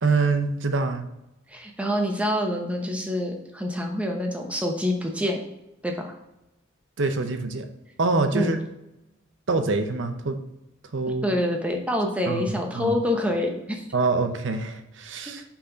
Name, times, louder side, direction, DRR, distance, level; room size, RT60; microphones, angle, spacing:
voice 1, 0.0-1.1 7.0-7.7 8.0-8.6 9.5-10.4 10.9-11.2 12.3-13.0 13.9-15.4, right 3 dB, 70° right, 7 dB, 0.7 m, -25 dB
voice 2, 1.5-5.4 5.8-6.1 8.3-8.5 11.2-13.8, left 1 dB, 5° right, 2 dB, 0.9 m, -26 dB
5.9 x 4.2 x 5.0 m, 0.89 s
head